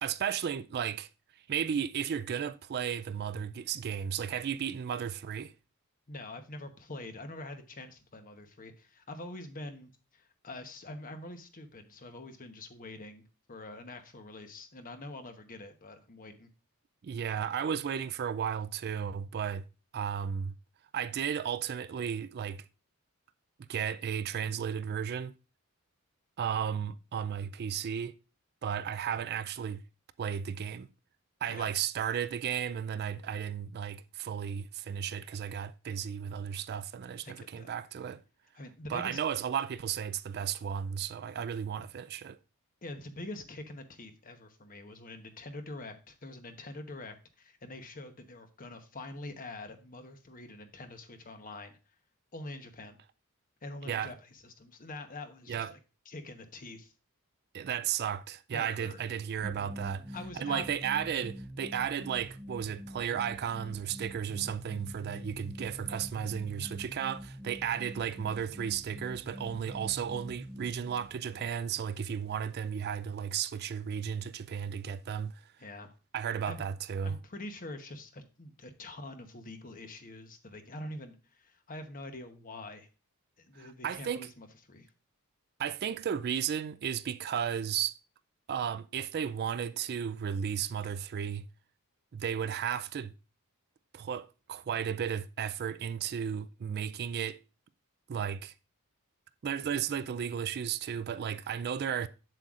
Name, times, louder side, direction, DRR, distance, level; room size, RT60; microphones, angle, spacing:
voice 1, 0.0-5.5 17.0-19.6 19.9-20.6 20.9-22.6 23.7-25.3 26.4-28.2 28.6-29.8 30.2-30.9 31.4-38.2 38.9-42.4 53.9-54.1 55.5-55.7 57.5-75.5 76.1-77.2 83.5-84.3 85.6-88.0 88.5-91.5 92.1-93.1 93.9-97.4 98.1-98.5 99.4-102.1, right 8 dB, 45° right, 0.3 m, -34 dB
voice 2, 6.1-13.2 13.5-16.5 31.5-31.7 37.2-37.7 38.5-39.2 42.8-51.8 52.3-53.0 53.6-55.8 56.1-56.9 58.5-59.0 60.1-60.7 75.6-75.9 76.5-76.6 77.0-82.9 83.4-84.9, left 2 dB, 40° left, 1.0 m, -45 dB
sound 1, 59.4-72.7, equal, 10° right, 0.7 m, -45 dB
7.7 x 7.5 x 2.4 m
head